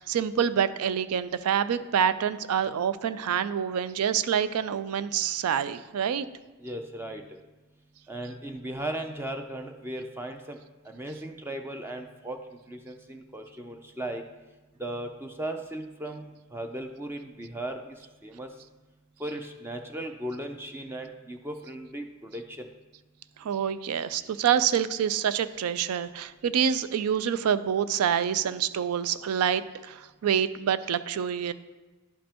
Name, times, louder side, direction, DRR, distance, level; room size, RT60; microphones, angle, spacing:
voice 1, 0.0-6.3 23.4-31.5, right 8 dB, 90° right, 14 dB, 0.4 m, -27 dB
voice 2, 6.6-7.2 8.1-10.6 10.8-12.4 12.7-14.2 14.8-16.3 16.5-18.5 19.2-22.7, right 1 dB, 10° right, 5 dB, 0.4 m, -37 dB
11.0 x 5.2 x 2.9 m, 1.2 s
head